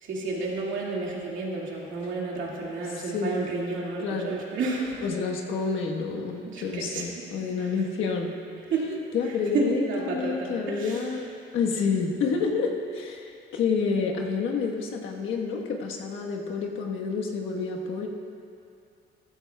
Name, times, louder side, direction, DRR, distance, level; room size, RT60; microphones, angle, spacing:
voice 1, 0.0-5.1 6.5-7.0 7.6-7.7 8.7-9.0 9.3-11.0, right 3 dB, 80° right, -3 dB, 2.1 m, -31 dB
voice 2, 4.0-4.4 5.0-8.3 9.1-11.3 11.5-18.1, left 5 dB, 85° left, 0 dB, 1.3 m, -29 dB
15.0 x 13.0 x 2.3 m, 2.5 s
cardioid pair, 90°, 20 cm